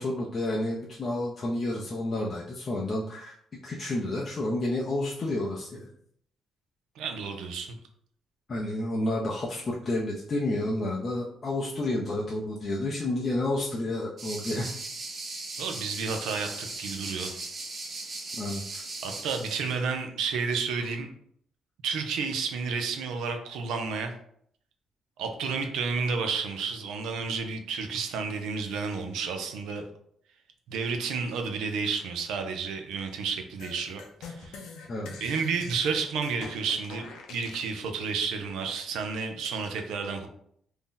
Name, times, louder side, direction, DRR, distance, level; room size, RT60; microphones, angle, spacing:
voice 1, 0.0-3.4 3.6-5.8 8.5-14.8 18.3-18.8 34.9-35.4, left 1 dB, 40° left, -4 dB, 0.5 m, -30 dB
voice 2, 7.0-7.8 15.6-17.5 19.0-21.1 21.8-24.1 25.2-29.8 30.7-34.7 35.2-40.3, right 5 dB, 85° right, 5 dB, 0.4 m, -31 dB
sound 1, 14.2-19.8, right 3 dB, 50° right, 0.7 m, -38 dB
sound 2, 33.6-37.7, left 4 dB, 85° left, 0.5 m, -44 dB
2.6 x 2.1 x 3.7 m, 0.67 s
cardioid pair, 90°, 0 cm